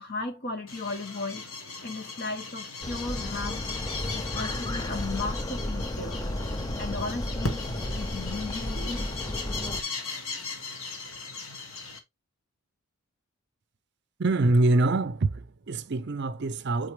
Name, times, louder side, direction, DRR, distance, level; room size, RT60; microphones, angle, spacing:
voice 1, 0.0-1.5 1.8-3.6 4.1-6.2 6.8-7.7 7.9-9.1, left 3 dB, 45° left, 1.1 m, -35 dB
sound 1, 0.7-12.0, left 4 dB, 65° left, 1.4 m, -38 dB
sound 2, 2.8-9.8, left 1 dB, 15° left, 0.5 m, -33 dB
voice 2, 14.2-16.9, right 2 dB, 50° right, 0.5 m, -25 dB
7.9 x 4.0 x 3.1 m
head